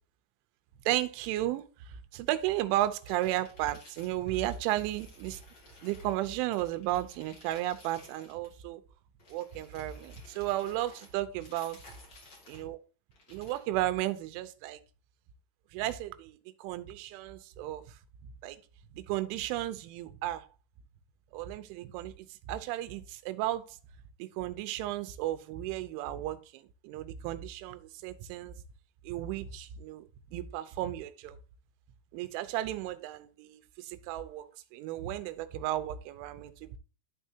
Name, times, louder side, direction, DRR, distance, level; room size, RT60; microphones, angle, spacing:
voice 1, 0.9-5.4 5.8-8.8 9.3-11.8 12.5-12.8 13.3-14.8 15.7-18.0 18.4-18.6 18.9-20.5 21.3-23.8 24.2-28.6 29.0-30.0 30.3-31.4 32.1-36.8, right 14 dB, 85° right, 11 dB, 3.1 m, -34 dB
sound 1, 2.7-6.2 6.5-8.6 9.2-12.7 13.1-13.7, left 3 dB, 50° left, 1.2 m, -56 dB
12.0 x 4.5 x 2.8 m, 0.35 s
omnidirectional pair, 5.5 m